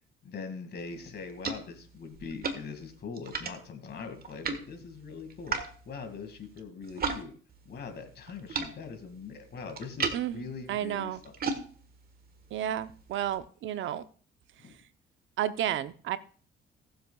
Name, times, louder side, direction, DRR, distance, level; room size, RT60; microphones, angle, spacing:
voice 1, 0.2-7.3 7.7-11.3 14.6-14.8, left 5 dB, 55° left, 7 dB, 2.1 m, -42 dB
sound 1, 0.8-7.2 7.5-13.4, right 4 dB, 50° right, 1.5 m, -38 dB
voice 2, 10.7-11.2 12.5-14.1 15.4-16.2, right 11 dB, 75° right, 12 dB, 0.7 m, -31 dB
18.0 x 7.7 x 2.3 m, 0.41 s
cardioid pair, 90°, 20 cm